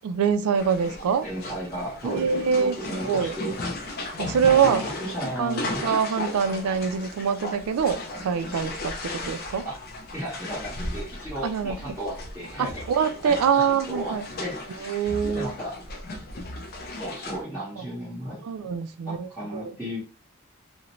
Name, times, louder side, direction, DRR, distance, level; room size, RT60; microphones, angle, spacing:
voice 1, 0.0-1.3 2.0-2.8 3.0-3.3 4.2-4.9 5.4-9.7 11.4-11.8 12.6-14.2 14.8-15.5 17.8-17.9 18.4-19.7, right 7 dB, 85° right, 0.3 m, -24 dB
sound 1, 0.6-17.4, left 2 dB, 45° left, 0.4 m, -36 dB
voice 2, 1.2-3.5 4.1-5.9 9.6-9.8 10.1-14.6 15.3-15.8 17.0-18.4 19.1-20.0, equal, 10° right, 0.9 m, -35 dB
2.5 x 2.1 x 2.9 m
head